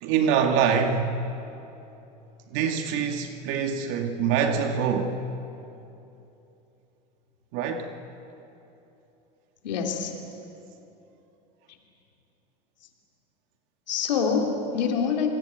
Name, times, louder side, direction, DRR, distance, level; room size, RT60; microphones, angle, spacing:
voice 1, 0.0-1.1 2.5-5.2 7.5-7.9, right 7 dB, 65° right, 5 dB, 2.1 m, -25 dB
voice 2, 9.6-10.1 13.9-15.3, left 6 dB, 90° left, 2 dB, 3.3 m, -25 dB
27.0 x 21.0 x 9.1 m, 2.9 s
hypercardioid pair, 100°, 21 cm